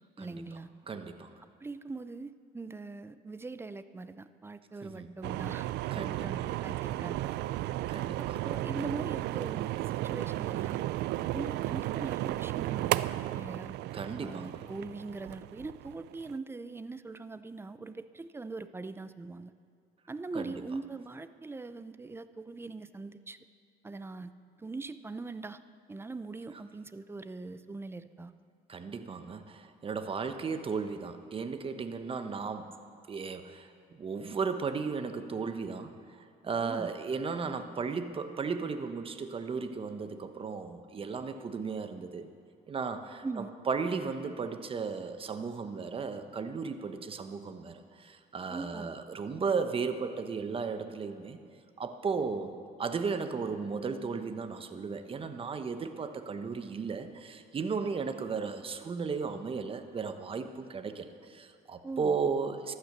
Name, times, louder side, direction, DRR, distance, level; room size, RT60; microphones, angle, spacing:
voice 1, 0.2-0.7 1.6-5.7 6.0-7.3 8.2-10.9 11.3-13.0 13.3-13.7 14.2-19.5 20.1-23.4 23.8-24.3 24.6-25.6 25.9-28.3 36.6-36.9 43.2-43.5 48.5-48.9 61.8-62.2, right 3 dB, 15° right, 13 dB, 0.6 m, -41 dB
voice 2, 0.9-1.3 4.8-5.1 5.9-6.5 7.9-8.4 13.9-14.6 20.3-20.5 28.7-32.7 33.1-42.3 42.7-51.4 51.8-52.5 52.8-62.7, right 5 dB, 35° right, 8 dB, 1.1 m, -35 dB
pour-out, 5.2-16.4, right 15 dB, 80° right, 0.4 m, -34 dB
15.0 x 11.5 x 6.7 m, 2.3 s
cardioid pair, 110°, 17 cm